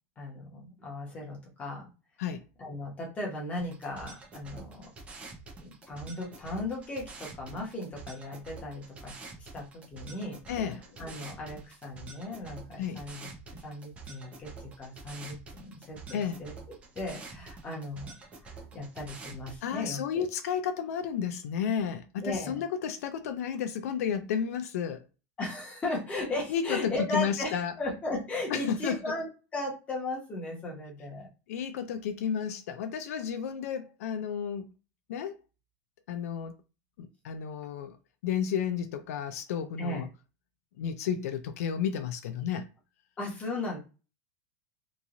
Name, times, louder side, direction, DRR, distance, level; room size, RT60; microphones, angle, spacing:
voice 1, 0.2-1.9 2.6-4.9 5.6-10.4 11.0-13.3 13.6-14.5 14.8-16.5 16.9-18.1 18.7-20.2 22.2-22.6 25.4-31.3 39.8-40.0 43.2-43.8, left 2 dB, 15° left, 1.1 m, -36 dB
sound 1, 3.6-19.6, right 3 dB, 15° right, 0.7 m, -47 dB
voice 2, 10.5-10.8 12.8-13.0 16.1-16.4 19.6-25.0 26.5-27.7 28.5-29.1 31.5-34.7 35.1-35.4 36.1-36.5 37.0-38.0 38.2-40.1 40.8-42.7, left 8 dB, 75° left, 0.4 m, -32 dB
2.9 x 2.5 x 2.5 m
supercardioid pair, 165°, 8 cm